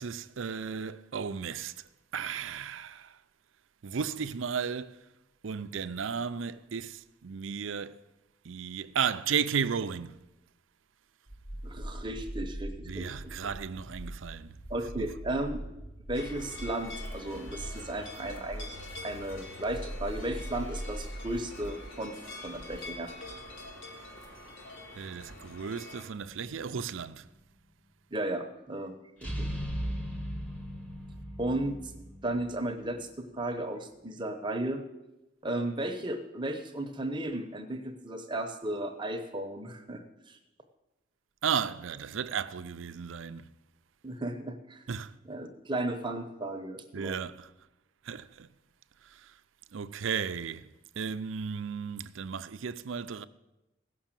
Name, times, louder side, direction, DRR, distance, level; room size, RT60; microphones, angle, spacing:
voice 1, 0.0-1.7 2.1-3.2 3.8-5.0 5.4-8.0 8.4-10.2 12.8-14.6 15.0-15.1 24.9-27.3 41.4-43.5 44.9-45.1 46.9-47.5 48.0-48.5 49.1-49.3 49.7-53.3, right 6 dB, 75° right, 0.5 m, -34 dB
sound 1, 11.3-21.9, right 1 dB, 25° left, 0.8 m, -42 dB
voice 2, 11.6-13.3 14.7-15.6 16.1-18.7 19.0-22.2 22.4-23.1 28.1-28.9 29.2-29.5 31.4-31.8 32.2-34.8 35.4-40.4 44.0-44.8 45.3-47.2, right 1 dB, 25° right, 0.9 m, -35 dB
sound 2, 16.1-26.0, left 2 dB, 75° left, 1.9 m, -45 dB
sound 3, 26.3-26.9 29.2-33.0, equal, 5° left, 1.0 m, -37 dB
16.0 x 6.2 x 7.4 m
head